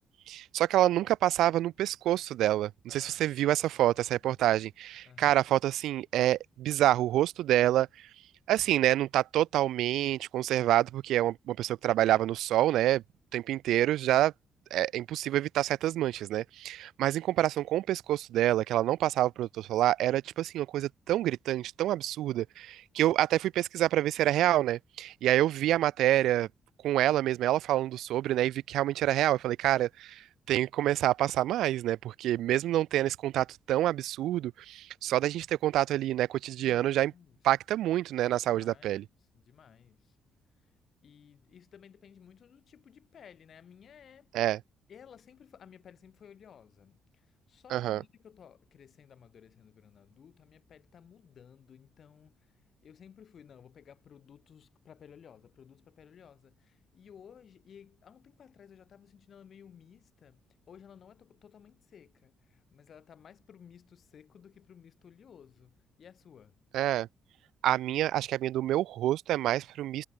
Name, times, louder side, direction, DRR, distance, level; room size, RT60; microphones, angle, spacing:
voice 1, 0.3-7.9 8.5-13.0 13.3-14.3 14.7-26.5 26.8-30.2 30.5-37.1 37.4-39.0 44.3-44.6 47.7-48.0 66.7-67.1 67.6-70.0, right 13 dB, 85° right, 0.4 m, -27 dB
voice 2, 2.9-4.4 5.0-5.5 36.6-37.4 38.4-40.2 41.0-44.3 44.9-66.6, left 8 dB, 55° left, 7.3 m, -56 dB
cardioid pair, 90°, 0 cm